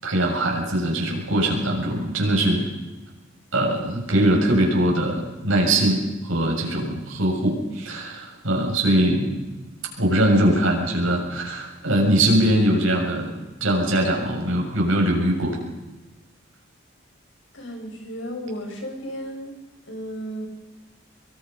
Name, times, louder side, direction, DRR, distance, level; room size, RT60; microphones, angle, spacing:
voice 1, 0.0-2.7 3.5-9.4 10.0-13.3 13.6-15.6, right 1 dB, 90° right, 0 dB, 7.2 m, -21 dB
voice 2, 17.5-19.5 19.9-20.5, equal, 70° left, 1 dB, 6.9 m, -34 dB
24.0 x 23.5 x 5.5 m, 1.1 s
head